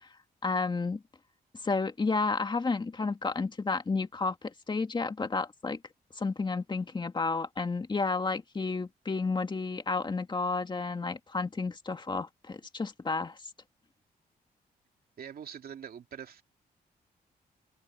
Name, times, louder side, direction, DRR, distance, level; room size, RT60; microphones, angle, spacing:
voice 1, 0.4-1.0 1.6-5.8 6.2-13.4, left 4 dB, 30° left, 2.1 m, -31 dB
voice 2, 15.2-16.4, right 8 dB, 65° right, 2.7 m, -43 dB
open air
cardioid pair, 115°, 17 cm